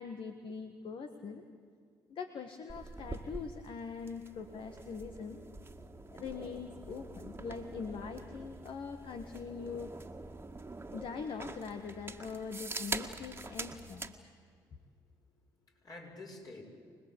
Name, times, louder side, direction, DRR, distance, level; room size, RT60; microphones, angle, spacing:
voice 1, 0.0-1.4 2.1-5.4 6.1-10.0 10.9-14.1, left 5 dB, 60° left, 6 dB, 1.7 m, -42 dB
sound 1, 2.7-14.2, right 3 dB, 25° right, 1.9 m, -45 dB
voice 2, 14.7-16.6, left 2 dB, 40° left, 0 dB, 7.2 m, -51 dB
25.5 x 20.0 x 8.6 m, 2.2 s
supercardioid pair, 55°, 10 cm